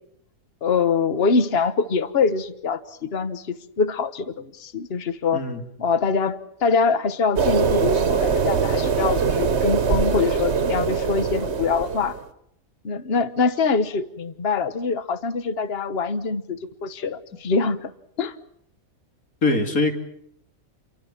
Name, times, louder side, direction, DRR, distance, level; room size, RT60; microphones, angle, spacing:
voice 1, 0.6-5.4 5.8-12.2 12.8-17.9 18.2-18.3, left 5 dB, 45° left, 1.3 m, -24 dB
voice 2, 5.3-5.7 19.4-19.9, left 3 dB, 75° left, 3.2 m, -22 dB
sound 1, 7.4-12.2, right 5 dB, 50° right, 1.4 m, -22 dB
29.0 x 23.5 x 7.3 m
omnidirectional pair, 1.5 m